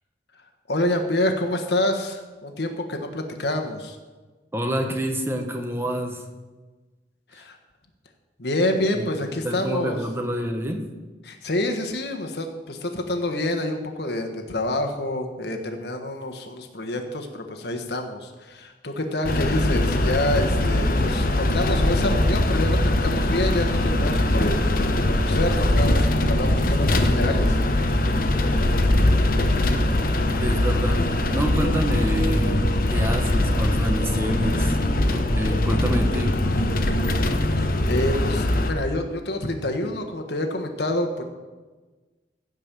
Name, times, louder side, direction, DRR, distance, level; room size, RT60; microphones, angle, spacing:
voice 1, 0.7-4.0 7.3-7.6 8.4-10.0 11.2-24.6 24.9-27.6 37.6-41.2, left 1 dB, 65° left, 4 dB, 1.4 m, -27 dB
voice 2, 4.5-6.2 9.0-9.1 9.4-10.8 30.4-31.0 31.3-34.8 35.1-36.4 36.7-36.8, equal, 15° right, 4 dB, 1.1 m, -27 dB
sound 1, 19.2-38.7, left 1 dB, 50° left, 0.9 m, -21 dB
16.0 x 5.4 x 7.5 m, 1.3 s
head